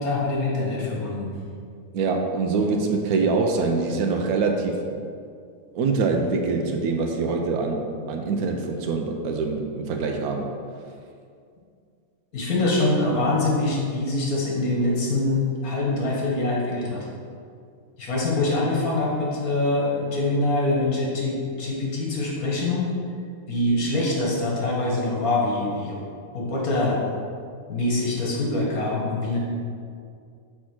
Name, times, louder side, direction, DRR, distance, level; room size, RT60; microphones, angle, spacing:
voice 1, 0.0-1.3 12.3-17.1 18.0-22.9 23.5-26.0 26.3-27.0 27.7-29.4, left 2 dB, 80° left, -4 dB, 1.9 m, -24 dB
voice 2, 1.9-4.9 5.7-10.5, right 4 dB, 90° right, 2 dB, 1.2 m, -24 dB
5.7 x 4.4 x 6.0 m, 2.3 s
omnidirectional pair, 1.5 m